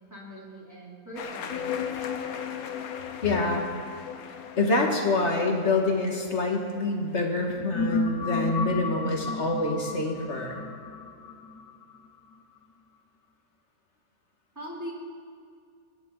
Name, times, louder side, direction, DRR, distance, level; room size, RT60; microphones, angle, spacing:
voice 1, 0.1-1.8 14.6-14.9, equal, 10° right, -5 dB, 3.7 m, -41 dB
sound 1, 1.2-7.8, left 6 dB, 70° left, 1.4 m, -42 dB
sound 2, 1.5-6.8 7.4-12.3, left 4 dB, 85° left, 1.5 m, -34 dB
voice 2, 3.2-3.7 4.6-10.6, left 2 dB, 50° left, 1 dB, 2.3 m, -26 dB
26.5 x 11.5 x 4.1 m, 2.4 s
omnidirectional pair, 1.6 m